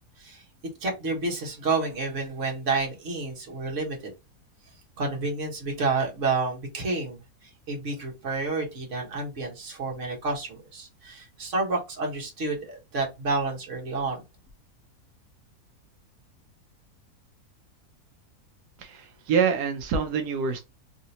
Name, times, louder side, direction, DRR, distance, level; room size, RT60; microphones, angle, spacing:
voice 1, 0.8-4.1 5.0-14.2, right 3 dB, 55° right, 1.5 m, -30 dB
voice 2, 18.8-20.6, right 6 dB, 90° right, 1.2 m, -26 dB
3.2 x 2.8 x 2.7 m
omnidirectional pair, 1.7 m